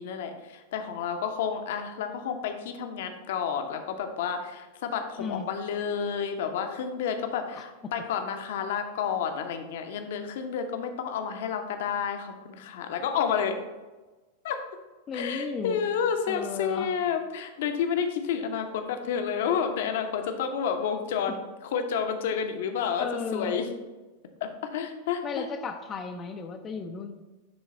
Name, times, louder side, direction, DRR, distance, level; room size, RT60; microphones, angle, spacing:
voice 1, 0.0-13.6 14.4-14.6 15.1-23.7 24.4-25.5, left 7 dB, 55° left, 6 dB, 0.8 m, -30 dB
voice 2, 7.5-7.9 15.1-15.8 16.3-16.9 23.0-23.6 25.2-27.2, left 5 dB, 25° left, 4 dB, 0.6 m, -35 dB
9.6 x 3.9 x 4.2 m, 1.2 s
figure-of-eight pair, 90°, 0 cm